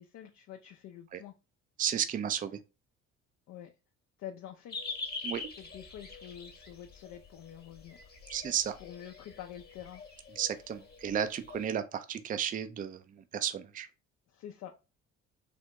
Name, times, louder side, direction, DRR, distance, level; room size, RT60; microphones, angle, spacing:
voice 1, 0.0-1.3 3.5-3.7 4.2-4.8 5.6-8.0 8.8-10.0 14.3-14.7, left 10 dB, 55° left, 0.5 m, -47 dB
voice 2, 1.8-2.6 5.2-5.4 8.3-8.8 10.4-13.9, right 9 dB, 25° right, 0.4 m, -33 dB
sound 1, 4.7-11.7, left 4 dB, 30° left, 1.1 m, -45 dB
3.5 x 2.1 x 2.8 m
hypercardioid pair, 60°, 33 cm